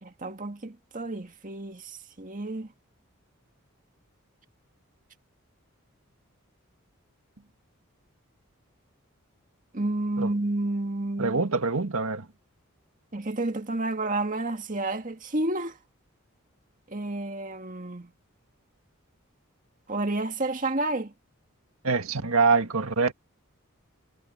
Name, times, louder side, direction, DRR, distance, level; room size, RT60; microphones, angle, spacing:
voice 1, 0.0-2.7 9.7-11.4 13.1-15.8 16.9-18.1 19.9-21.1, right 2 dB, 40° right, 2.0 m, -30 dB
voice 2, 11.2-12.3 21.8-23.1, right 4 dB, 90° right, 1.8 m, -24 dB
head